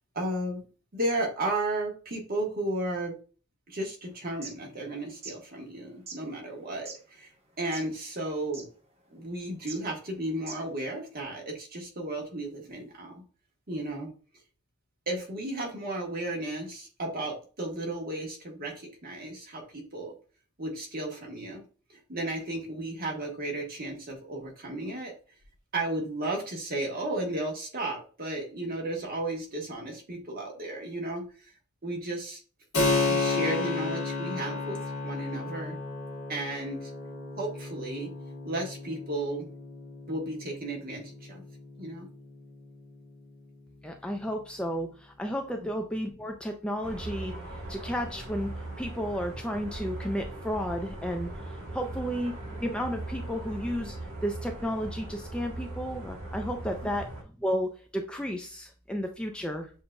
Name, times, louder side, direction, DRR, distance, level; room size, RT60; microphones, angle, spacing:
voice 1, 0.1-0.6 0.9-3.1 3.7-7.3 7.6-8.7 9.1-13.2 13.7-14.1 15.1-20.1 20.6-21.6 21.9-25.1 25.7-31.3 31.8-32.4 33.1-35.8 36.3-36.9 37.4-38.1 38.4-39.5 40.1-41.4 41.8-42.1, right 1 dB, 45° right, 0 dB, 1.3 m, -34 dB
sound 1, 4.2-4.5 5.1-5.4 6.1-6.2 6.9-7.0 7.6-8.0 8.2-8.3 8.5-8.7 9.6-9.8 10.4-10.7, right 4 dB, 30° right, 0.9 m, -41 dB
Keyboard (musical), 32.7-43.0, left 3 dB, 65° left, 1.6 m, -33 dB
voice 2, 43.8-47.3 47.7-48.5 48.8-51.3 51.7-54.0 54.2-57.1 57.4-59.7, equal, 5° left, 3 dB, 0.4 m, -32 dB
sound 2, 46.8-57.2, right 2 dB, 80° right, 1.4 m, -39 dB
6.9 x 2.6 x 2.2 m, 0.38 s
head